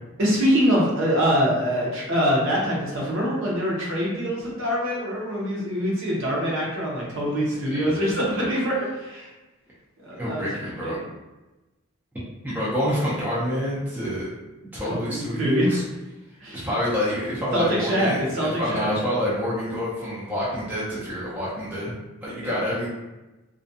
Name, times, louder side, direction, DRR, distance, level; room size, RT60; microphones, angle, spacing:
voice 1, 0.2-9.3 10.0-10.5 10.8-11.0 14.9-15.7 16.4-16.7 17.5-18.9 22.4-22.7, equal, 60° right, -4 dB, 0.7 m, -24 dB
voice 2, 10.2-11.0 12.4-14.3 14.7-15.8 16.5-21.9 22.2-22.9, equal, 10° right, -9 dB, 0.5 m, -27 dB
2.4 x 2.2 x 2.6 m, 1.1 s
head